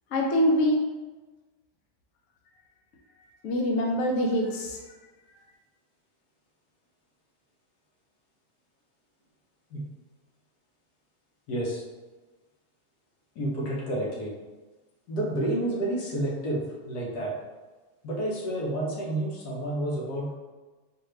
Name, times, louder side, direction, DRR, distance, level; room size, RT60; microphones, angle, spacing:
voice 1, 0.1-0.8 3.4-4.8, equal, 65° left, 0 dB, 0.9 m, -24 dB
voice 2, 11.5-11.8 13.3-14.3 15.1-17.3 18.0-20.3, right 1 dB, 85° left, -3 dB, 1.5 m, -30 dB
4.1 x 2.6 x 3.2 m, 1.2 s
omnidirectional pair, 1.7 m